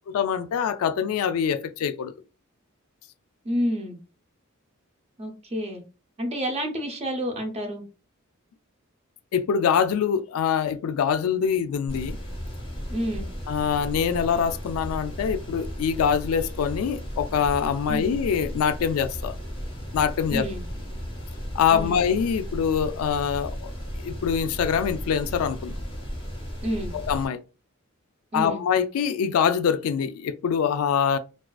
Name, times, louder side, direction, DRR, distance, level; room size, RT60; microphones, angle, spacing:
voice 1, 0.1-2.1 9.3-12.2 13.5-19.3 19.9-20.5 21.5-23.7 24.0-25.7 26.9-27.4 28.3-31.2, left 7 dB, 80° left, 0.3 m, -24 dB
voice 2, 3.4-4.0 5.2-5.8 6.2-7.8 12.9-13.3 17.9-18.2 20.3-20.6 21.7-22.0 26.6-26.9 28.3-28.6, equal, 30° right, 0.5 m, -29 dB
sound 1, 11.9-27.3, equal, 25° left, 0.7 m, -35 dB
2.4 x 2.3 x 2.2 m
head